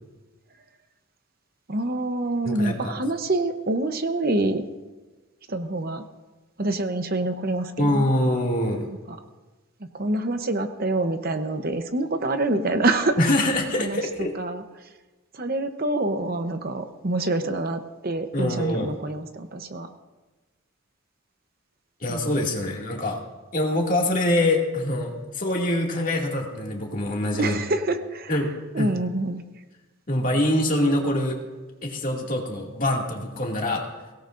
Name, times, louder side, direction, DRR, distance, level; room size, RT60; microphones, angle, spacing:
voice 1, 1.7-4.6 5.5-6.0 6.6-8.1 9.1-9.2 9.8-13.2 13.8-14.6 15.3-19.9 22.1-22.4 27.4-28.3 28.7-29.4, right 2 dB, 45° right, 7 dB, 0.8 m, -26 dB
voice 2, 2.4-2.9 7.8-8.9 13.2-14.3 18.3-18.9 22.0-23.2 23.5-27.5 28.3-28.5 28.8-28.9 30.1-31.4 31.8-33.9, left 1 dB, 40° left, 0 dB, 2.3 m, -24 dB
23.0 x 17.5 x 2.6 m, 1.2 s
head